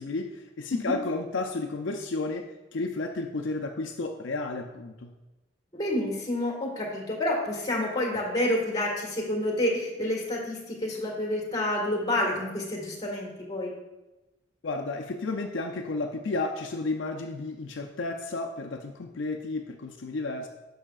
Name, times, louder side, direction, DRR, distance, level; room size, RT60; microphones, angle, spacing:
voice 1, 0.0-2.5 2.7-5.1 14.6-20.5, left 3 dB, 70° left, 3 dB, 0.5 m, -32 dB
voice 2, 5.7-13.7, left 1 dB, 20° left, -2 dB, 1.7 m, -29 dB
10.0 x 6.3 x 2.4 m, 1.0 s
head